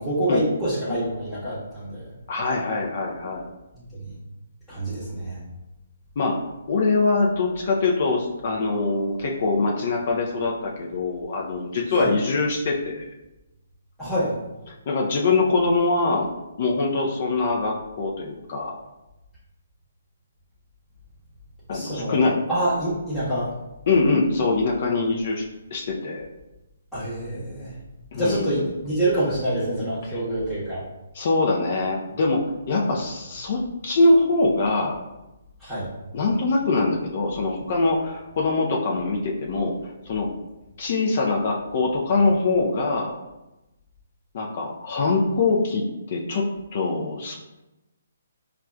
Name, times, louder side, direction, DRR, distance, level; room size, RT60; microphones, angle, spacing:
voice 1, 0.0-2.1 3.7-3.8 4.7-5.4 12.0-12.1 14.0-14.3 21.7-22.2 22.5-23.5 26.9-27.7 28.1-30.8 35.6-35.9, right 1 dB, 5° left, -14 dB, 1.0 m, -26 dB
voice 2, 2.3-3.5 6.2-6.3 6.7-13.1 14.9-16.3 16.6-18.8 21.7-22.4 23.9-25.4 25.7-26.3 28.1-28.6 30.1-30.2 31.1-35.0 36.1-40.3 40.8-43.2 44.3-47.4, left 3 dB, 50° left, 0 dB, 0.5 m, -23 dB
4.7 x 2.3 x 2.2 m, 0.98 s
hypercardioid pair, 145°, 0 cm